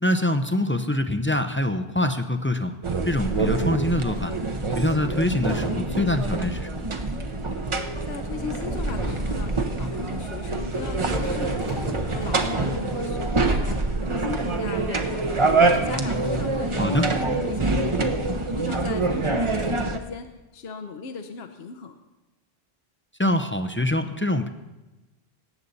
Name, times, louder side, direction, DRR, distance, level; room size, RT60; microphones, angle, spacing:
voice 1, 0.0-2.7 3.1-4.3 4.8-6.8 16.8-17.0 23.2-24.5, left 1 dB, 15° left, 8 dB, 0.4 m, -24 dB
sound 1, 2.8-20.0, right 2 dB, 30° right, 0.8 m, -25 dB
Fireworks, 5.5-7.1 7.9-8.0 8.7-14.0 15.1-16.8 17.4-17.9, right 1 dB, 65° right, 5.7 m, -38 dB
voice 2, 8.0-15.2 15.6-20.3 20.5-21.9, left 4 dB, 75° left, 7 dB, 1.0 m, -37 dB
18.0 x 8.1 x 4.1 m, 1.1 s
omnidirectional pair, 1.1 m